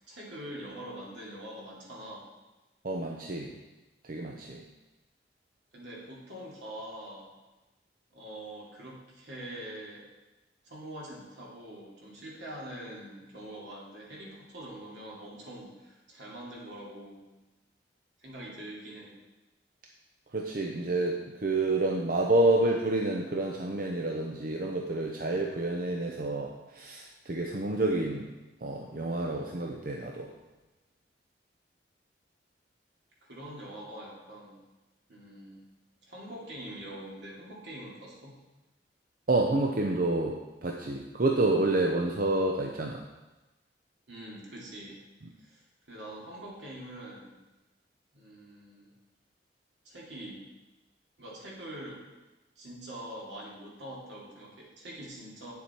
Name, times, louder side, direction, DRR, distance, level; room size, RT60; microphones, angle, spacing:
voice 1, 0.1-2.3 5.7-7.3 8.1-10.1 10.6-17.2 18.2-19.1 33.2-34.6 35.1-35.6 36.1-38.4 44.1-45.0 45.4-47.4 48.1-48.9 49.8-50.4 51.2-52.0 52.6-55.5, right 1 dB, 80° right, -4 dB, 2.7 m, -44 dB
voice 2, 2.8-3.6 4.0-4.6 20.3-28.3 28.6-30.3 39.3-43.1, right 2 dB, 50° right, 1 dB, 0.7 m, -29 dB
9.1 x 7.2 x 4.5 m, 1.1 s
head